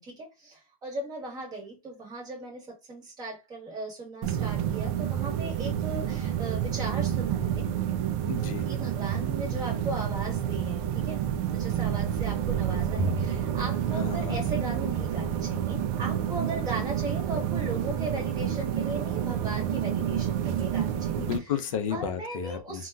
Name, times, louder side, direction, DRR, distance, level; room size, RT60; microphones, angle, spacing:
voice 1, 0.0-7.7 8.7-11.2 11.5-21.3 21.9-22.9, right 2 dB, 20° right, 1.2 m, -37 dB
sound 1, 4.2-21.4, right 10 dB, 40° right, 0.4 m, -29 dB
voice 2, 8.2-8.7 13.9-14.4 21.2-22.8, left 8 dB, 65° left, 0.6 m, -32 dB
Bowed string instrument, 13.0-15.5, right 2 dB, 20° left, 0.6 m, -36 dB
3.8 x 2.2 x 2.3 m
supercardioid pair, 135°, 19 cm